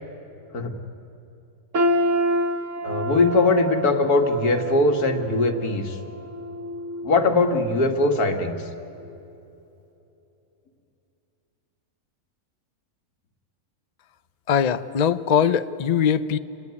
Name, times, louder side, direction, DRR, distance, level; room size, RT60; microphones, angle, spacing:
sound 1, 1.7-7.7 8.1-8.3 9.1-9.2, equal, 55° right, 1.7 m, -28 dB
voice 1, 2.8-6.0 7.0-8.6, left 2 dB, 80° left, 5 dB, 2.4 m, -21 dB
voice 2, 14.5-16.4, left 8 dB, 45° left, 12 dB, 0.5 m, -21 dB
28.0 x 21.0 x 9.6 m, 2.9 s
omnidirectional pair, 1.6 m